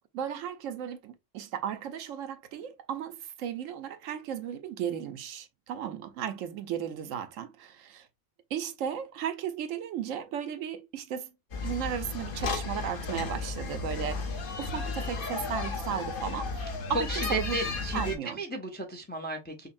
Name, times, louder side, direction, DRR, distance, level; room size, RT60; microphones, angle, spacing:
voice 1, 0.1-8.1 8.5-11.3 11.6-14.3 14.6-17.6 17.9-18.4, right 9 dB, 80° right, 1.0 m, -35 dB
sound 1, 11.5-18.2, left 4 dB, 50° left, 0.9 m, -34 dB
voice 2, 17.1-19.7, right 2 dB, 15° left, 0.4 m, -35 dB
5.4 x 2.1 x 2.6 m
omnidirectional pair, 1.3 m